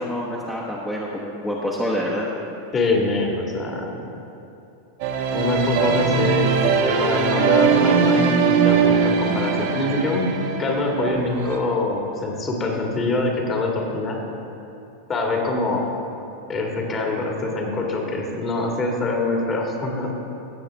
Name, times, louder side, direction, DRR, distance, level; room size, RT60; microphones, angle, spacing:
voice 1, 0.0-2.3, equal, 5° left, -5 dB, 1.2 m, -27 dB
voice 2, 2.7-4.0 5.3-6.5 6.8-10.3 10.6-14.2 15.1-15.9 16.5-20.1, left 2 dB, 30° left, 0 dB, 1.9 m, -24 dB
sound 1, 5.0-11.6, right 6 dB, 60° right, 1.0 m, -21 dB
17.5 x 7.1 x 3.5 m, 2.8 s
hypercardioid pair, 95°, 0 cm